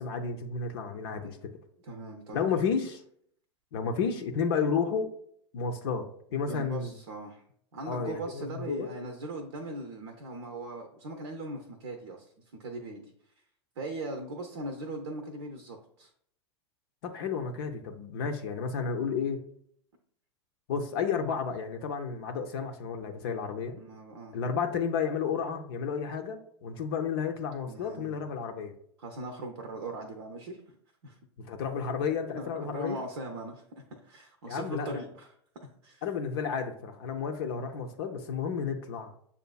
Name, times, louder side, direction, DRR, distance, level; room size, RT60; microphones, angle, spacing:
voice 1, 0.0-1.4 2.3-3.0 3.7-5.1 5.5-6.9 7.9-8.9 17.0-19.4 20.7-23.8 24.3-28.7 31.4-33.0 34.5-35.0 36.0-39.1, left 6 dB, 60° left, 4 dB, 0.5 m, -32 dB
voice 2, 1.8-2.5 6.4-7.4 7.7-12.3 12.6-13.1 13.8-16.1 23.8-24.4 27.7-28.2 29.0-30.8 31.0-31.2 32.4-35.3 35.8-36.0, right 2 dB, 65° right, 4 dB, 0.6 m, -40 dB
6.9 x 2.5 x 2.3 m, 0.66 s
figure-of-eight pair, 90°, 15 cm